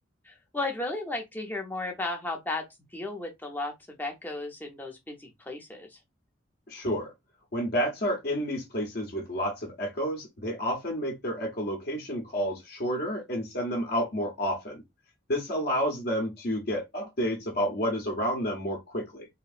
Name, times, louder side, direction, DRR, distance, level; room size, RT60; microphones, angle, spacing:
voice 1, 0.2-2.6 2.9-6.0, left 2 dB, 10° left, 0.6 m, -34 dB
voice 2, 6.7-7.1 7.5-14.8 15.3-19.3, equal, 50° left, 0.7 m, -30 dB
2.8 x 2.5 x 2.4 m
head